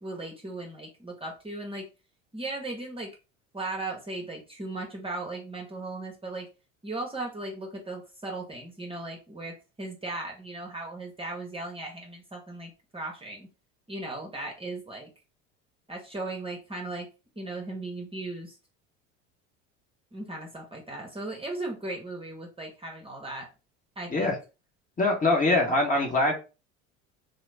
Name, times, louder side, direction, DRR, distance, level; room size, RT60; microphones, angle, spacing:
voice 1, 0.0-1.9 2.3-3.1 3.5-6.5 6.8-13.5 13.9-15.1 15.9-17.1 17.4-18.6 20.1-23.5 24.0-24.3, right 2 dB, 15° right, 0 dB, 0.8 m, -37 dB
voice 2, 25.0-26.3, left 2 dB, 20° left, 1 dB, 1.0 m, -23 dB
2.9 x 2.0 x 3.3 m, 0.30 s
hypercardioid pair, 85°, 37 cm